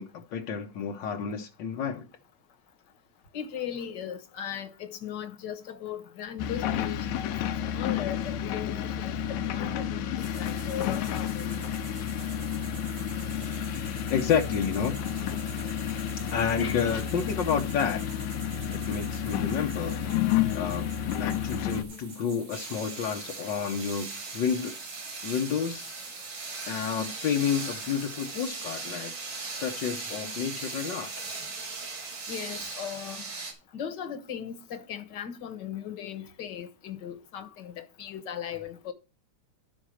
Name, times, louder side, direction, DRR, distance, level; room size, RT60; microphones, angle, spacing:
voice 1, 0.0-2.0 14.1-15.0 16.3-18.0 18.7-20.0 20.5-24.7 25.2-25.9 26.7-29.1 29.6-31.1, left 7 dB, 70° left, 1.1 m, -30 dB
voice 2, 3.3-7.3 7.6-11.6 15.1-15.2 15.5-15.6 16.6-17.0 32.3-33.2 33.7-38.9, left 8 dB, 50° left, 1.3 m, -38 dB
sound 1, 6.4-21.8, left 9 dB, 90° left, 2.2 m, -31 dB
sound 2, 10.2-28.5, right 3 dB, 80° right, 5.5 m, -48 dB
sound 3, 22.5-33.5, right 4 dB, 65° right, 4.2 m, -38 dB
13.5 x 4.5 x 6.3 m
omnidirectional pair, 3.3 m